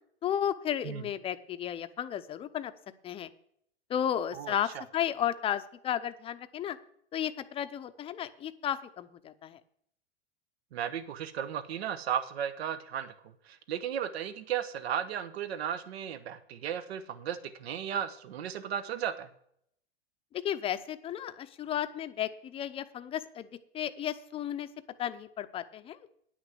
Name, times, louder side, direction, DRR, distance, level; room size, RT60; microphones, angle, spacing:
voice 1, 0.2-2.7 3.0-3.3 3.9-6.8 7.1-9.6 20.3-23.5 23.7-24.7 25.0-26.0, left 10 dB, 20° left, 11 dB, 0.5 m, -33 dB
voice 2, 4.3-4.8 10.7-13.1 13.4-19.3, right 9 dB, 85° right, 12 dB, 1.0 m, -35 dB
9.8 x 6.2 x 7.6 m, 0.69 s
supercardioid pair, 140°, 31 cm